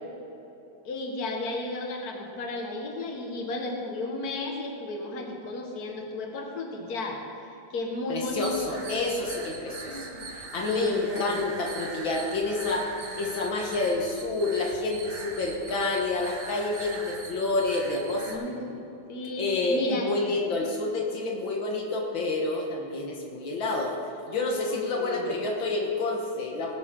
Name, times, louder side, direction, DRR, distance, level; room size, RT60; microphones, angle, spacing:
voice 1, 0.8-7.2 7.7-8.8 9.9-10.3 10.6-11.4 18.3-18.8 19.1-19.4 19.7-20.1 24.6-25.4, left 2 dB, 50° left, 1 dB, 2.0 m, -33 dB
voice 2, 8.1-10.1 10.5-12.9 13.2-18.4 19.4-23.9 24.3-26.8, left 2 dB, 75° left, 0 dB, 2.0 m, -28 dB
sound 1, 8.2-18.3, right 3 dB, 60° right, 2.0 m, -41 dB
19.0 x 11.0 x 3.7 m, 2.9 s
omnidirectional pair, 2.2 m